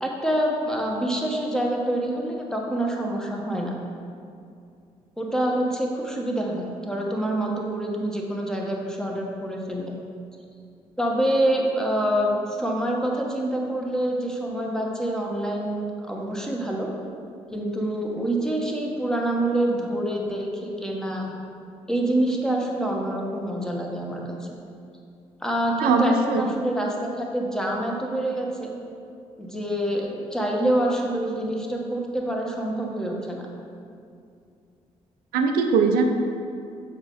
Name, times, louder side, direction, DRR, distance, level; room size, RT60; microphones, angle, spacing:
voice 1, 0.0-3.7 5.2-9.9 11.0-16.9 17.5-21.3 21.9-24.5 25.4-28.7 29.4-33.5, right 1 dB, 5° left, -1 dB, 1.1 m, -26 dB
voice 2, 25.8-26.4 35.3-36.0, right 5 dB, 65° right, 4 dB, 0.6 m, -20 dB
6.9 x 4.1 x 3.5 m, 2.4 s
figure-of-eight pair, 40°, 17 cm